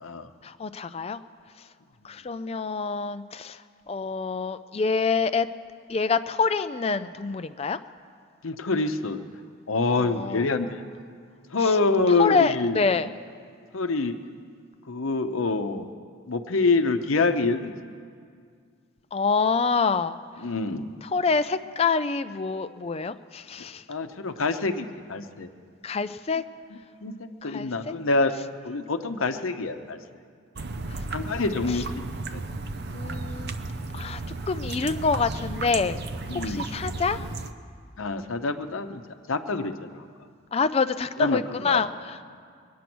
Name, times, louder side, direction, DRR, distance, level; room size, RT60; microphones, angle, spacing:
voice 1, 0.4-1.2 2.0-3.6 3.9-5.5 5.9-7.8 10.0-10.4 11.6-11.8 12.2-13.1 19.1-20.2 21.1-23.8 25.8-26.4 27.4-27.9 30.9-31.0 32.9-33.5 33.9-34.2 34.5-36.0 36.3-37.2 40.5-42.2, left 4 dB, 30° left, 11 dB, 0.4 m, -26 dB
voice 2, 8.4-9.2 9.7-10.8 11.5-12.8 13.7-14.1 14.9-15.9 16.3-18.0 20.4-20.9 23.9-25.5 27.0-27.1 27.4-28.3 28.6-30.0 31.1-32.4 36.3-36.7 38.0-39.0 39.3-40.0 41.2-41.8, left 3 dB, 75° left, 8 dB, 0.8 m, -26 dB
sound 1, 30.6-37.5, right 3 dB, 50° right, 0.6 m, -34 dB
22.0 x 9.4 x 6.1 m, 2.2 s
head